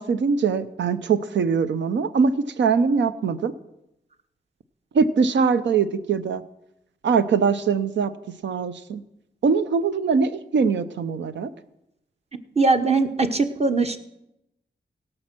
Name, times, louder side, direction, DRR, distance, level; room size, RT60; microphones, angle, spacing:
voice 1, 0.0-3.5 4.9-6.4 7.0-8.1 8.4-9.0 9.4-11.5, right 5 dB, 90° right, 12 dB, 0.6 m, -22 dB
voice 2, 12.6-14.0, right 3 dB, 35° right, 7 dB, 1.1 m, -20 dB
17.0 x 6.5 x 6.0 m, 0.86 s
cardioid pair, 60°, 18 cm